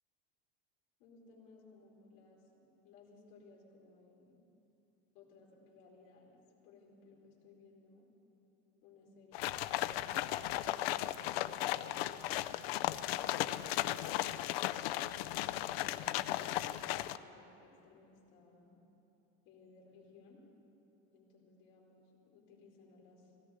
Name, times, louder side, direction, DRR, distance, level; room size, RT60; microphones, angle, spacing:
voice 1, 1.0-4.4 5.1-8.1 8.8-11.0 15.2-18.7 19.4-20.4 21.1-23.3, left 3 dB, 55° left, -4 dB, 4.1 m, -61 dB
sound 1, 9.3-17.2, left 14 dB, 85° left, 0.6 m, -36 dB
18.0 x 16.5 x 4.9 m, 3.0 s
cardioid pair, 170°, 29 cm